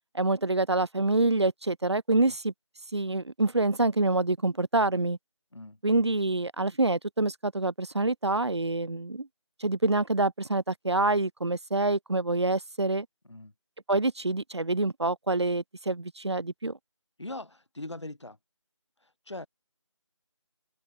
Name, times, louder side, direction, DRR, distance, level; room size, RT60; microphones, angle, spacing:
voice 1, 0.1-2.5 2.9-5.2 5.8-9.3 9.6-13.1 13.9-16.8, right 2 dB, 60° right, 1.4 m, -26 dB
voice 2, 17.2-18.4 19.0-19.5, left 2 dB, 60° left, 7.2 m, -41 dB
open air
figure-of-eight pair, 165°, 16 cm